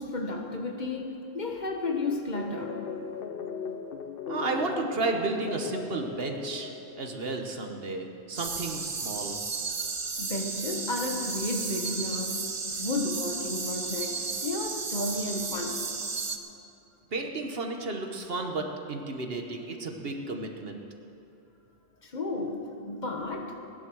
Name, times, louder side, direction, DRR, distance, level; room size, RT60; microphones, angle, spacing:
voice 1, 0.0-2.8 10.2-15.8 22.0-23.6, left 2 dB, 45° left, 2 dB, 1.3 m, -33 dB
sound 1, 2.3-7.5, left 5 dB, 60° left, 0.9 m, -38 dB
voice 2, 4.3-6.7 7.0-9.4 17.1-20.8, right 3 dB, 60° right, 3 dB, 1.4 m, -32 dB
sound 2, 8.4-16.4, right 4 dB, 30° right, 0.7 m, -33 dB
17.0 x 10.0 x 6.3 m, 2.8 s
omnidirectional pair, 1.1 m